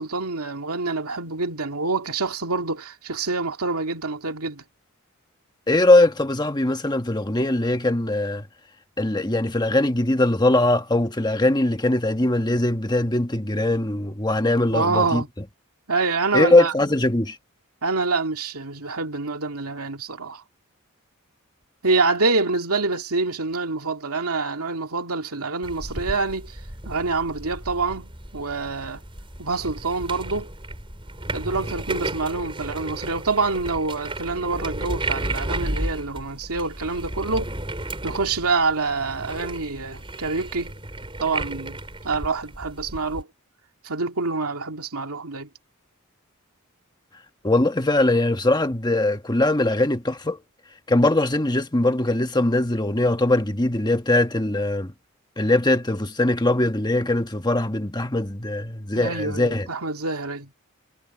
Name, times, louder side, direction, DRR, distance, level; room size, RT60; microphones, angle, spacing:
voice 1, 0.0-4.6 14.7-15.3 15.9-16.7 17.8-20.4 21.8-26.6 26.8-29.0 29.4-30.5 31.3-37.5 38.0-40.7 41.2-41.8 42.0-43.3 43.8-45.5 58.9-60.5, right 3 dB, 85° right, 2.6 m, -26 dB
voice 2, 5.7-8.5 9.0-15.2 16.3-17.4 47.4-50.4 50.9-54.9 55.4-59.7, left 2 dB, 20° left, 1.3 m, -21 dB
sound 1, 25.6-43.2, right 2 dB, 25° right, 5.7 m, -33 dB
head